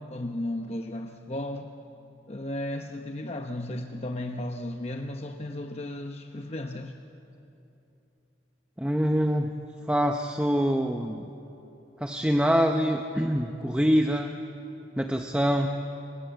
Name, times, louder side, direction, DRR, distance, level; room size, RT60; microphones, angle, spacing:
voice 1, 0.0-1.7 2.3-7.0, left 1 dB, 35° left, 4 dB, 0.8 m, -34 dB
voice 2, 8.8-9.5 9.9-11.3 12.0-14.3 15.0-15.7, equal, 5° right, 4 dB, 0.7 m, -25 dB
26.0 x 20.5 x 8.1 m, 2.9 s
head